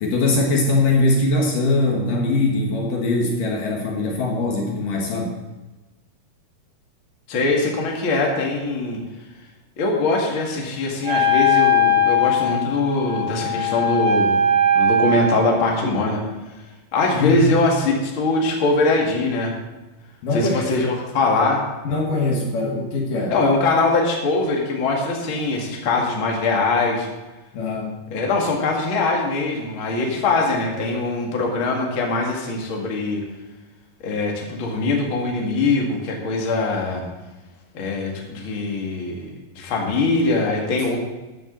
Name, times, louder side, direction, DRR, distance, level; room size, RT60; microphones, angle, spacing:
voice 1, 0.0-5.3 17.2-17.4 20.2-20.7 21.8-23.3 27.5-27.9, left 2 dB, 65° left, 0 dB, 3.0 m, -21 dB
voice 2, 7.3-9.0 9.8-14.4 14.8-16.2 16.9-19.5 20.3-21.6 23.3-27.1 28.1-33.2 34.0-37.0 37.7-39.3 39.5-41.0, left 3 dB, 40° left, -1 dB, 2.4 m, -22 dB
Wind instrument woodwind instrument, 11.0-15.6, left 2 dB, 85° right, 3.7 m, -19 dB
14.5 x 10.5 x 4.0 m, 1.1 s
omnidirectional pair, 4.4 m